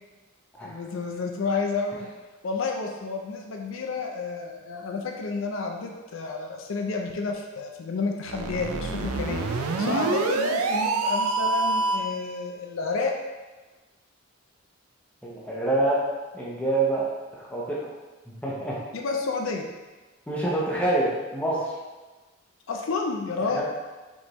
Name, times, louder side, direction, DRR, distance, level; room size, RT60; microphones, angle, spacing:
voice 1, 0.6-2.1 2.4-9.4 9.8-13.1 18.9-19.6 22.7-23.6, left 4 dB, 65° left, 2 dB, 0.5 m, -30 dB
sound 1, 8.2-12.2, right 3 dB, 90° right, 0.4 m, -26 dB
voice 2, 15.2-16.0 16.3-17.1 17.4-17.9 18.3-18.8 20.3-21.7 23.4-23.6, right 2 dB, 5° left, -6 dB, 0.8 m, -26 dB
5.1 x 3.4 x 3.0 m, 1.2 s
head